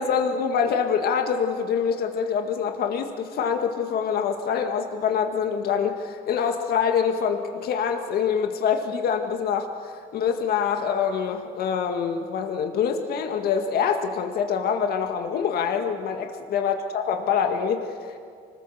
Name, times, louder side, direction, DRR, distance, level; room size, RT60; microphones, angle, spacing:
voice 1, 0.0-18.2, left 7 dB, 65° left, 5 dB, 1.8 m, -25 dB
25.5 x 20.0 x 7.3 m, 2.2 s
cardioid pair, 110°, 17 cm